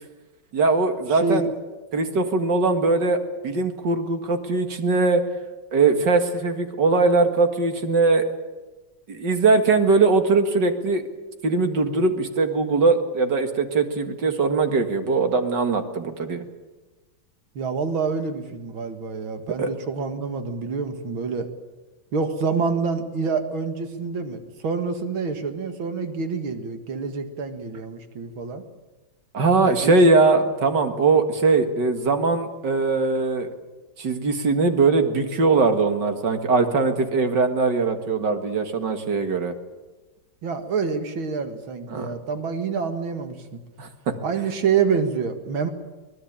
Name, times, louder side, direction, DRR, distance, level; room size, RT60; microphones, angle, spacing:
voice 1, 0.5-1.5 1.9-3.2 3.4-5.2 5.7-8.2 9.1-11.0 11.4-16.5 19.6-19.7 29.3-33.5 34.0-39.5 41.9-42.1 43.8-43.9, right 3 dB, 60° right, 7 dB, 2.5 m, -21 dB
voice 2, 1.1-1.5 17.6-21.5 22.1-28.6 29.6-30.0 40.4-43.6 44.2-45.7, right 5 dB, 80° right, 7 dB, 2.7 m, -27 dB
24.0 x 19.0 x 8.8 m, 1.2 s
omnidirectional pair, 2.2 m